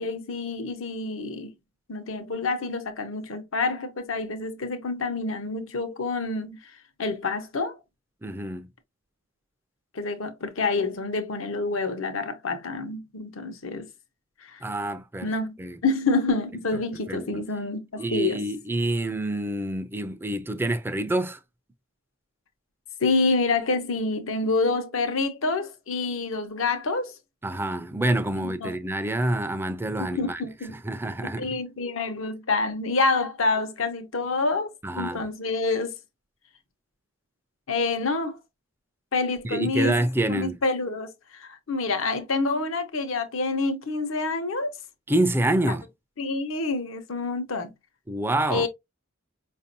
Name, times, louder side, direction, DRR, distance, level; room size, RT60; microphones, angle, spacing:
voice 1, 0.0-1.5 1.9-6.6 7.0-7.8 9.9-13.9 14.4-14.6 15.2-15.5 15.8-18.4 23.0-27.1 28.4-28.7 30.0-30.8 31.2-34.7 35.0-36.0 37.7-38.4 39.1-40.0 40.3-41.1 41.4-44.7 46.2-47.7 48.5-48.7, left 3 dB, 75° left, 0.9 m, -27 dB
voice 2, 8.2-8.7 14.6-15.3 15.6-15.8 17.1-17.4 18.0-21.4 27.4-30.4 30.7-31.6 34.8-35.3 39.4-40.6 45.1-45.9 48.1-48.7, right 1 dB, 10° right, 0.4 m, -27 dB
5.1 x 2.6 x 2.6 m
head